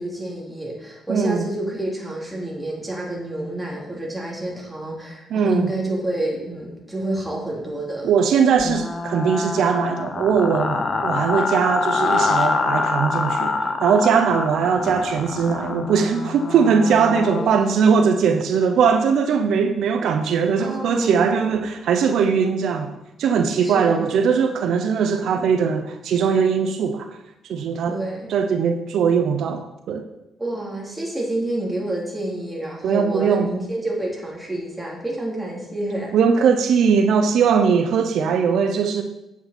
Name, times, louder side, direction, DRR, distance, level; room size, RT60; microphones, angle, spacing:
voice 1, 0.0-8.1 17.4-18.0 20.6-21.3 23.6-24.2 27.8-28.3 30.4-36.1, right 1 dB, 5° right, -3 dB, 3.4 m, -29 dB
voice 2, 1.1-1.4 5.3-5.7 8.0-22.9 23.2-27.1 27.4-28.0 28.3-30.1 32.8-33.5 36.1-39.0, right 6 dB, 75° right, 6 dB, 0.7 m, -20 dB
sound 1, 8.6-17.5, left 4 dB, 40° left, 1.0 m, -25 dB
8.6 x 8.3 x 4.3 m, 0.90 s
cardioid pair, 90°, 0 cm